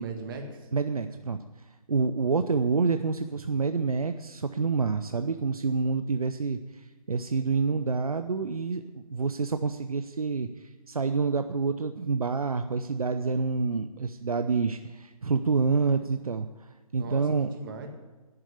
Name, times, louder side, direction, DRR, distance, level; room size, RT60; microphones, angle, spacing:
voice 1, 0.0-0.7 17.0-17.9, right 4 dB, 35° right, 4 dB, 2.0 m, -39 dB
voice 2, 0.7-1.4 1.9-16.7 16.9-17.5, right 4 dB, 70° right, 8 dB, 0.7 m, -28 dB
10.5 x 8.9 x 8.3 m, 1.2 s
figure-of-eight pair, 135°, 19 cm